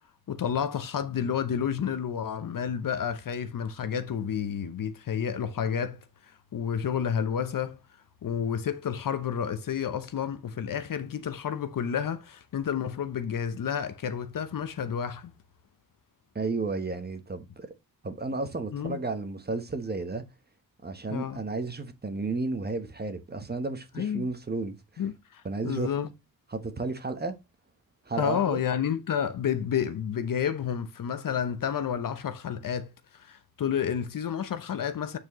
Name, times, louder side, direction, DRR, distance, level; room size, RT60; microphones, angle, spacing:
voice 1, 0.3-6.0 6.3-7.8 8.2-15.3 18.7-19.0 21.1-21.4 23.9-24.3 25.0-26.1 28.2-35.2, left 8 dB, 60° left, 0.8 m, -30 dB
voice 2, 16.3-17.7 18.0-20.2 20.8-24.8 25.4-25.9 26.5-27.3 28.1-28.6, right 3 dB, 25° right, 1.1 m, -32 dB
8.4 x 4.6 x 3.0 m
wide cardioid pair, 115°, 38 cm